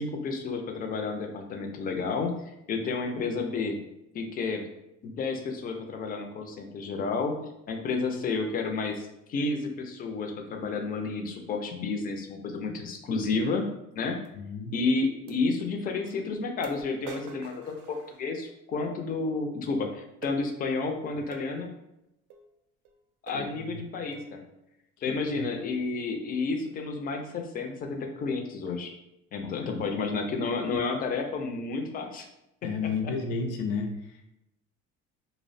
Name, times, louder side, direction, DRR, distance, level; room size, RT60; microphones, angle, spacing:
voice 1, 0.0-2.3 2.7-3.8 4.1-4.6 5.0-7.4 7.7-13.6 14.0-14.2 14.7-21.7 23.2-24.4 25.0-28.9 29.3-32.3, left 4 dB, 30° left, 4 dB, 0.4 m, -31 dB
sound 1, 14.2-14.3 15.3-15.4 16.1-16.2 16.6-18.6 20.2-20.4 21.3-21.5 22.3-22.5 22.8-23.0 23.3-23.6 24.1-24.4, right 4 dB, 75° right, 0.5 m, -45 dB
voice 2, 14.3-14.7 23.3-23.8 25.1-25.4 29.6-29.8 32.6-34.3, left 4 dB, 80° left, 4 dB, 0.5 m, -33 dB
2.6 x 2.0 x 2.5 m, 0.87 s
cardioid pair, 115°, 31 cm